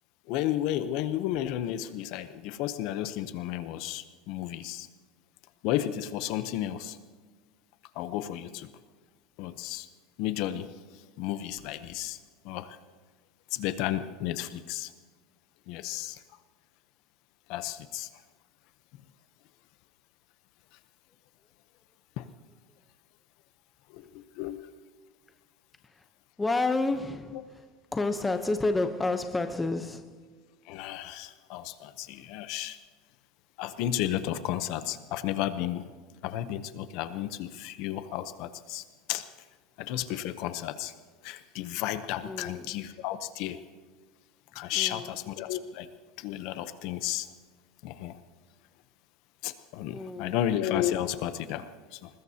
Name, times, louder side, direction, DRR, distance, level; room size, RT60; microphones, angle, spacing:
voice 1, 0.3-4.9 5.6-7.0 7.9-8.7 9.4-9.9 10.2-10.7 11.2-12.2 12.4-12.8 13.5-14.9 15.7-16.2 17.5-18.1 22.2-22.3 23.9-24.6 30.7-32.8 33.6-35.9 36.2-39.3 39.8-40.9 41.2-43.6 44.5-45.9 46.2-47.3 47.8-48.2 49.4-52.1, left 12 dB, 50° left, 0.8 m, -33 dB
voice 2, 26.4-27.6 27.9-30.1 42.2-42.8 44.7-45.1 49.9-50.4, left 2 dB, 10° left, 0.8 m, -30 dB
21.5 x 20.5 x 2.9 m
supercardioid pair, 165°, 0 cm